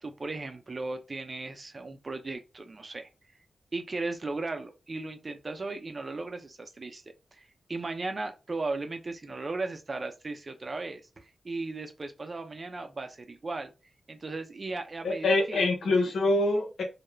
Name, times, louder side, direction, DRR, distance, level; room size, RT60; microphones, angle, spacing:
voice 1, 0.0-3.1 3.7-7.0 7.3-13.7 14.1-15.9, right 3 dB, 45° right, 0.6 m, -36 dB
voice 2, 15.0-16.8, left 2 dB, 80° left, 0.6 m, -25 dB
2.3 x 2.1 x 3.1 m
supercardioid pair, 40°, 0 cm